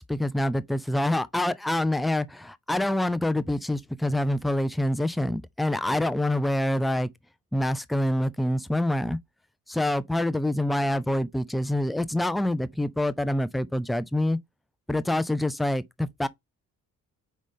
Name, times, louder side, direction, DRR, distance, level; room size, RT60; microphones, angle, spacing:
voice 1, 0.0-7.1 7.5-9.2 9.7-14.4 14.9-16.3, left 1 dB, ahead, 0.3 m, -26 dB
5.1 x 3.6 x 5.3 m
figure-of-eight pair, 40°, 47 cm